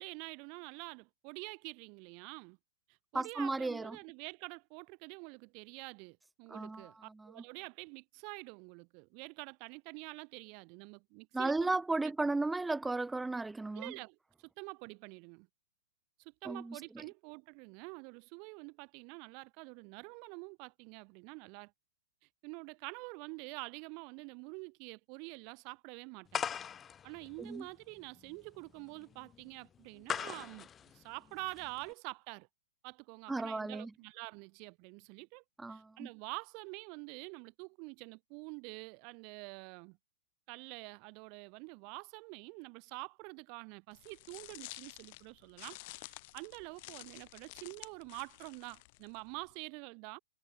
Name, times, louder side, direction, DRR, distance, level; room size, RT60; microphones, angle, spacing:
voice 1, 0.0-2.6 3.1-11.7 13.7-15.5 16.2-21.7 22.4-26.4 27.0-30.7 30.9-32.5 32.8-35.4 35.7-40.0 40.5-50.2, right 35 dB, 40° right, 0.9 m, -47 dB
voice 2, 3.1-4.0 6.5-7.3 11.3-13.9 16.4-17.0 27.4-27.7 33.3-33.9 35.6-36.1, right 3 dB, 5° right, 0.7 m, -35 dB
sound 1, 26.3-31.9, left 8 dB, 20° left, 0.3 m, -41 dB
sound 2, 43.9-49.5, left 24 dB, 45° left, 1.3 m, -51 dB
figure-of-eight pair, 105°, 0 cm